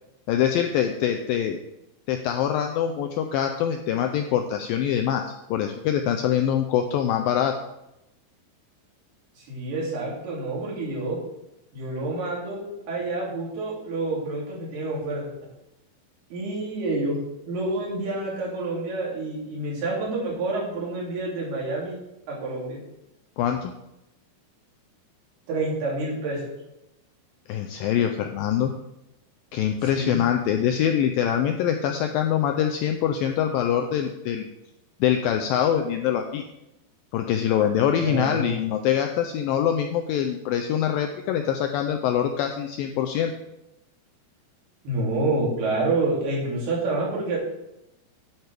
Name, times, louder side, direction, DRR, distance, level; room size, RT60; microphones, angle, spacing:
voice 1, 0.3-1.6 2.1-7.5 23.4-23.7 27.5-28.7 29.5-34.5 35.0-36.4 37.1-43.3, left 9 dB, 90° left, 5 dB, 2.0 m, -24 dB
voice 2, 9.4-11.2 11.7-12.6 12.9-15.3 16.3-17.2 17.4-22.0 22.3-22.8 25.5-26.5 29.8-30.2 38.0-38.5 44.8-47.4, right 2 dB, 75° right, -4 dB, 4.6 m, -28 dB
9.6 x 8.8 x 3.4 m, 0.88 s
omnidirectional pair, 4.7 m